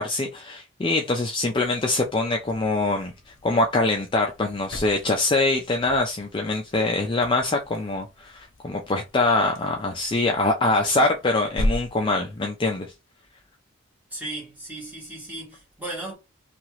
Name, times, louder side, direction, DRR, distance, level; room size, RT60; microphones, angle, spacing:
voice 1, 0.0-12.9, left 2 dB, 25° left, 0.3 m, -24 dB
sound 1, 1.5-12.6, left 1 dB, 60° left, 0.7 m, -37 dB
voice 2, 14.1-16.1, right 2 dB, 10° right, 1.3 m, -36 dB
2.8 x 2.4 x 3.0 m
head